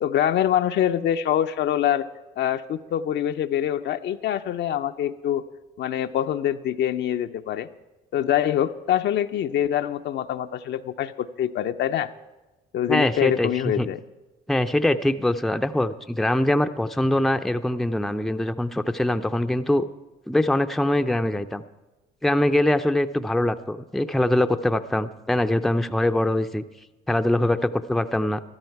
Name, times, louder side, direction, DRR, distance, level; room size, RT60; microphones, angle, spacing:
voice 1, 0.0-2.1 2.4-5.4 5.8-7.7 8.1-12.1 12.7-14.0, left 10 dB, 60° left, 9 dB, 0.6 m, -25 dB
voice 2, 12.9-13.5 13.8-13.9 14.5-19.8 20.3-21.6 22.2-26.6 27.1-28.4, left 1 dB, ahead, 10 dB, 0.5 m, -23 dB
14.0 x 12.5 x 4.6 m, 1.1 s
supercardioid pair, 65°, 20 cm